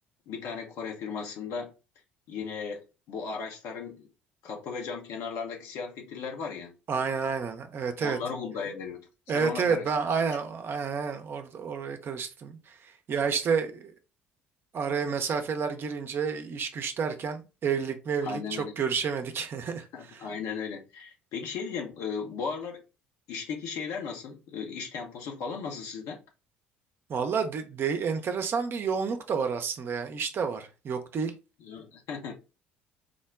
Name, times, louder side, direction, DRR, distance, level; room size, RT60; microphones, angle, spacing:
voice 1, 0.3-1.7 2.3-4.1 4.4-6.7 8.0-9.0 9.3-9.9 18.2-18.7 19.9-22.8 23.3-26.2 31.6-32.3, left 5 dB, 60° left, 0.9 m, -36 dB
voice 2, 6.9-8.2 9.3-13.9 14.7-20.3 27.1-31.3, right 6 dB, 40° right, 0.6 m, -30 dB
3.7 x 2.1 x 3.5 m
figure-of-eight pair, 55°, 6 cm